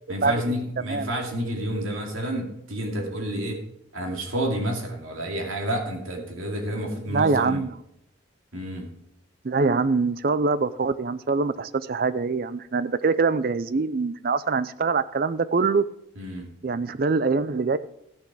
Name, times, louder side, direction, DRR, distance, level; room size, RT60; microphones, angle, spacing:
voice 1, 0.1-3.6 3.9-7.6 8.5-8.9 16.2-16.5, equal, 80° right, 1 dB, 2.6 m, -29 dB
voice 2, 7.1-7.8 9.4-15.8 16.6-17.8, right 4 dB, 45° right, 15 dB, 0.4 m, -24 dB
13.5 x 6.8 x 4.8 m, 0.79 s
head